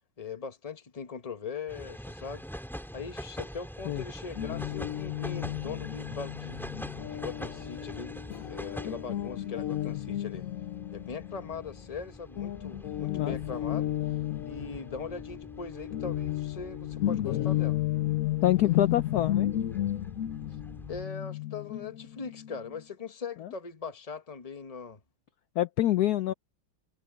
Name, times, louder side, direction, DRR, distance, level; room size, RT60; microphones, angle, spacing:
voice 1, 0.2-2.4 2.9-6.6 7.1-8.1 8.5-10.5 10.9-13.9 14.4-17.8 20.9-25.0, left 5 dB, 20° left, 1.1 m, -40 dB
sound 1, 1.7-21.0, equal, ahead, 3.3 m, -45 dB
Guitar, 4.4-12.0 12.4-22.8, left 13 dB, 90° left, 0.7 m, -33 dB
voice 2, 18.4-19.5 23.4-23.5 25.6-26.3, left 13 dB, 70° left, 1.0 m, -26 dB
omnidirectional pair, 2.2 m